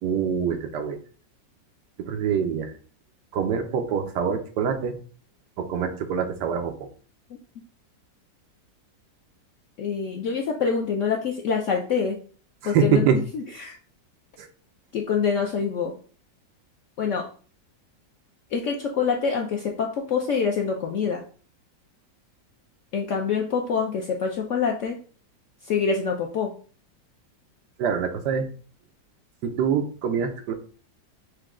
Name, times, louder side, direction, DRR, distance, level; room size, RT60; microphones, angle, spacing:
voice 1, 0.0-1.0 2.0-2.7 3.3-5.0 5.6-6.9 12.6-13.2 14.4-14.5 27.8-28.5 29.4-30.5, right 7 dB, 70° right, 6 dB, 1.2 m, -25 dB
voice 2, 9.8-12.2 12.6-13.0 13.3-13.8 14.9-15.9 17.0-17.2 18.5-21.2 22.9-25.0 25.6-26.5, left 6 dB, 85° left, 1 dB, 0.6 m, -25 dB
6.2 x 2.2 x 3.6 m, 0.41 s
omnidirectional pair, 2.0 m